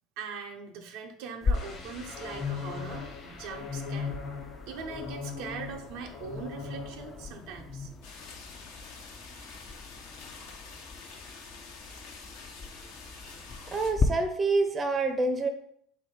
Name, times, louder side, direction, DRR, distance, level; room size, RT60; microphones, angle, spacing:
voice 1, 0.2-4.2 4.7-7.9, right 5 dB, 70° right, 3 dB, 0.6 m, -41 dB
sound 1, 1.4-14.1, left 4 dB, 35° left, 0.4 m, -38 dB
sound 2, 1.5-7.3 7.6-7.9, left 6 dB, 50° left, 1.2 m, -39 dB
sound 3, 8.0-13.9, left 4 dB, 70° left, 0.8 m, -47 dB
voice 2, 13.7-15.5, right 3 dB, 30° right, 7 dB, 0.6 m, -27 dB
3.4 x 2.7 x 4.6 m, 0.68 s
hypercardioid pair, 75°, 0 cm